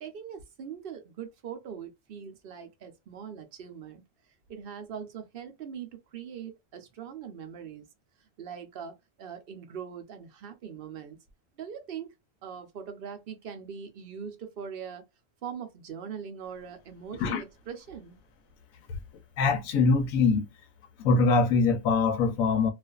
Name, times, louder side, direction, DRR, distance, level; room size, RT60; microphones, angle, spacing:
voice 1, 0.0-4.0 4.5-7.8 8.4-11.2 11.6-12.1 12.4-15.0 15.4-18.2, right 7 dB, 60° right, 0.6 m, -41 dB
voice 2, 19.4-20.4 21.0-22.7, left 4 dB, 85° left, 1.1 m, -23 dB
2.4 x 2.4 x 2.3 m
omnidirectional pair, 1.4 m